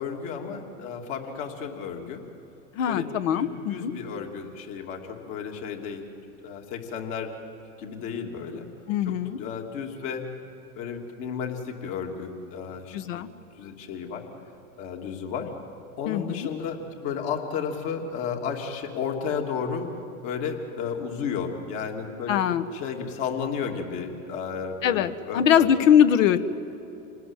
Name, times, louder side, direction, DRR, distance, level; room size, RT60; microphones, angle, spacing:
voice 1, 0.0-2.2 2.9-6.0 6.4-7.4 7.8-8.7 9.1-10.2 10.8-13.2 13.6-14.3 14.8-15.5 16.0-19.9 20.2-22.4 22.7-25.7, left 6 dB, 55° left, 2 dB, 3.0 m, -33 dB
voice 2, 2.8-3.9 8.9-9.4 12.9-13.3 16.1-16.5 22.3-22.7 24.8-26.4, left 9 dB, 70° left, 9 dB, 1.3 m, -22 dB
27.5 x 19.0 x 9.1 m, 2.7 s
hypercardioid pair, 100°, 40 cm